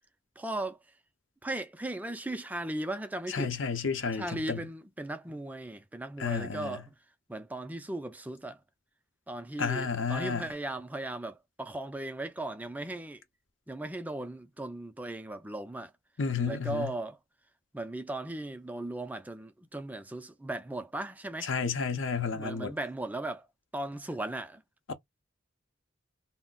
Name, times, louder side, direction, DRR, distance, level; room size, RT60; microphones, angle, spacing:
voice 1, 0.4-0.8 1.4-3.5 4.1-7.0 7.3-8.6 9.3-13.2 13.7-15.9 16.5-17.2 17.7-21.5 22.3-23.5 23.7-24.6, right 1 dB, 10° right, 0.4 m, -37 dB
voice 2, 3.3-4.6 6.2-6.8 9.6-10.5 16.2-16.9 21.4-22.7 24.9-25.0, left 5 dB, 80° left, 0.7 m, -31 dB
2.4 x 2.1 x 3.8 m
head